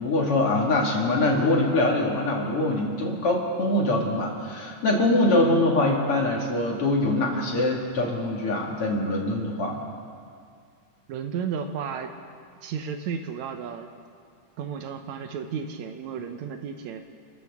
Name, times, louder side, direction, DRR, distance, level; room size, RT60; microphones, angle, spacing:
voice 1, 0.0-9.8, left 2 dB, 50° left, -1 dB, 2.7 m, -23 dB
voice 2, 11.1-12.1 12.6-13.9 14.6-17.0, right 7 dB, 75° right, 6 dB, 2.0 m, -33 dB
29.5 x 14.0 x 3.6 m, 2.2 s
omnidirectional pair, 3.5 m